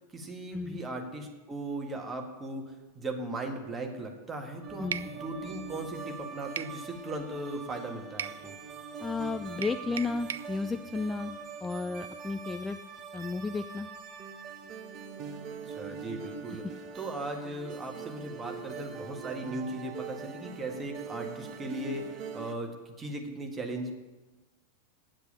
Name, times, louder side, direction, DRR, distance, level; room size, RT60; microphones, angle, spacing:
voice 1, 0.1-8.6 15.7-16.7 17.0-23.9, right 2 dB, 15° right, 2 dB, 1.8 m, -38 dB
sound 1, 4.6-22.6, right 6 dB, 35° right, 1.1 m, -43 dB
voice 2, 4.8-5.1 9.0-12.8 13.1-13.9 16.5-16.6, left 4 dB, 15° left, 9 dB, 0.4 m, -33 dB
sound 2, 4.9-5.1 6.6-6.8 8.2-8.4 9.6-10.5, right 8 dB, 65° right, 0.4 m, -36 dB
9.0 x 8.0 x 8.9 m, 1.2 s
figure-of-eight pair, 90°, 0 cm